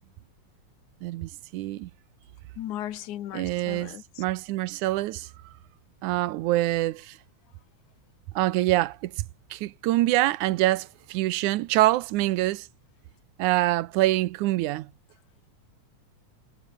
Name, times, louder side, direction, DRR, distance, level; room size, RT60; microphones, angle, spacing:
voice 1, 1.0-1.9 3.3-5.3 6.0-7.2 8.4-9.1 9.5-12.7 13.4-14.9, right 16 dB, 85° right, 2.2 m, -25 dB
voice 2, 2.6-4.0, left 12 dB, 80° left, 2.7 m, -36 dB
omnidirectional pair, 3.4 m